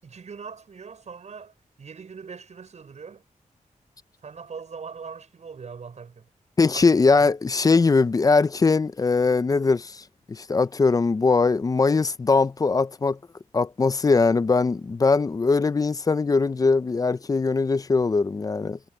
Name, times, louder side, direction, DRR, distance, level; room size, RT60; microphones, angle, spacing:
voice 1, 0.0-3.2 4.2-6.3 6.7-7.3, right 5 dB, 55° right, 6.2 m, -41 dB
voice 2, 6.6-13.2 13.5-18.8, left 4 dB, 25° left, 0.4 m, -21 dB
wide cardioid pair, 180°, 14 cm